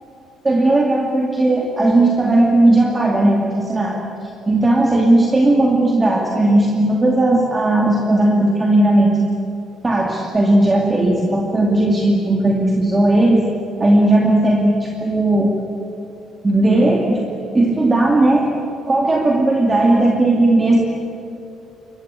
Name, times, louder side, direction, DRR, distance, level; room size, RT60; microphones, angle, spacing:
voice 1, 0.4-4.0 4.5-9.3 9.8-13.4 13.8-15.5 16.4-17.2 17.5-18.5 18.9-20.8, right 1 dB, 15° right, 0 dB, 2.4 m, -16 dB
26.5 x 22.5 x 9.3 m, 2.9 s
cardioid pair, 160°, 0 cm